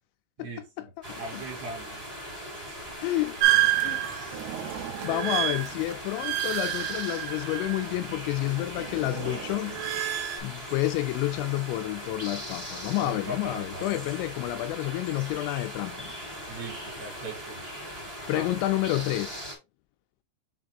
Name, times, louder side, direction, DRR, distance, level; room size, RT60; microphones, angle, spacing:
voice 1, 0.4-2.1 13.0-14.0 16.5-17.6 18.2-18.5, right 2 dB, 60° right, 4.0 m, -40 dB
sound 1, 1.0-19.5, equal, 20° right, 1.0 m, -40 dB
voice 2, 3.0-3.4 3.8-4.1 5.0-9.8 10.4-16.2 18.3-19.5, left 16 dB, 85° left, 2.7 m, -29 dB
sound 2, 3.4-8.1 8.4-10.4, right 13 dB, 80° right, 2.3 m, -29 dB
7.4 x 3.6 x 3.6 m
omnidirectional pair, 5.5 m